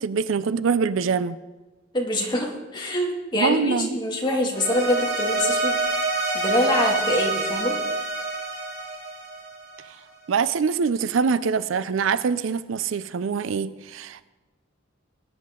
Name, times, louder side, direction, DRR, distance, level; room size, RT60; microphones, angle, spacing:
voice 1, 0.0-1.4 3.3-3.9 10.3-14.3, right 5 dB, 75° right, 16 dB, 0.4 m, -24 dB
voice 2, 1.9-5.8 6.3-7.8, left 1 dB, 25° left, -1 dB, 2.2 m, -25 dB
sound 1, 4.5-9.9, right 2 dB, 50° right, 3.6 m, -26 dB
19.0 x 9.5 x 3.8 m, 1.2 s
head